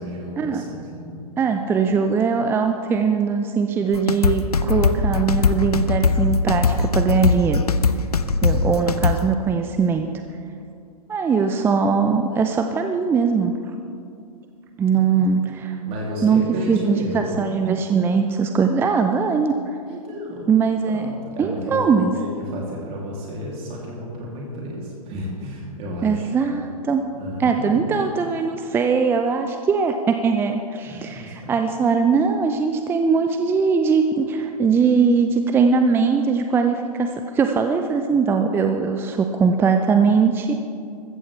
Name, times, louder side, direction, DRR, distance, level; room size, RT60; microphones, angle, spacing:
voice 1, 0.0-1.2 8.5-9.0 14.9-15.3 15.9-17.4 19.9-20.5 20.9-21.9 22.1-26.3 27.1-27.9 30.9-31.6, equal, 30° right, -3 dB, 2.8 m, -32 dB
voice 2, 1.4-7.6 8.4-10.1 11.1-13.5 14.8-15.8 16.2-19.6 20.5-21.1 21.4-22.1 26.0-27.0 27.4-40.5, right 5 dB, 10° right, 6 dB, 0.5 m, -20 dB
sound 1, 3.9-9.3, left 4 dB, 85° left, 0.6 m, -20 dB
14.5 x 14.5 x 3.3 m, 2.5 s
figure-of-eight pair, 110°, 19 cm